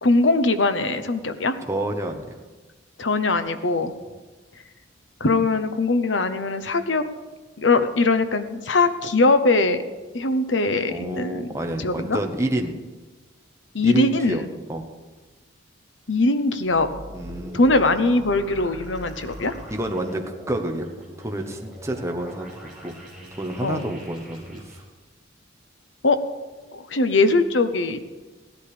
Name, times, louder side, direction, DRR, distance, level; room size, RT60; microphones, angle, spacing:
voice 1, 0.0-1.5 3.0-3.9 5.2-7.1 7.6-9.8 10.1-11.5 11.8-12.2 13.7-14.5 16.1-16.9 17.5-19.5 23.6-23.8 26.0-26.2 26.7-28.0, left 3 dB, 60° left, 10 dB, 0.9 m, -21 dB
voice 2, 1.7-2.4 3.8-3.9 10.9-12.8 13.8-14.4 14.7-14.9 17.1-17.6 19.7-20.9 21.2-22.9 23.4-24.8, right 1 dB, 15° right, 3 dB, 1.1 m, -28 dB
sound 1, 16.6-24.8, equal, ahead, 5.7 m, -41 dB
16.0 x 11.5 x 5.1 m, 1.3 s
head